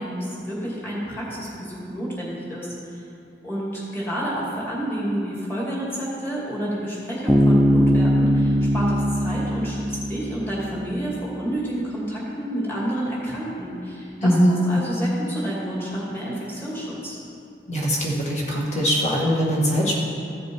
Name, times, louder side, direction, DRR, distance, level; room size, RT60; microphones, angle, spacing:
voice 1, 0.0-3.0 3.4-14.3 14.7-17.2, right 1 dB, 15° left, -6 dB, 2.6 m, -29 dB
Bass guitar, 7.3-10.9, equal, 5° right, 0.5 m, -20 dB
voice 2, 14.2-14.6 17.7-19.9, equal, 40° left, -3 dB, 2.0 m, -21 dB
14.5 x 6.9 x 4.7 m, 2.5 s
head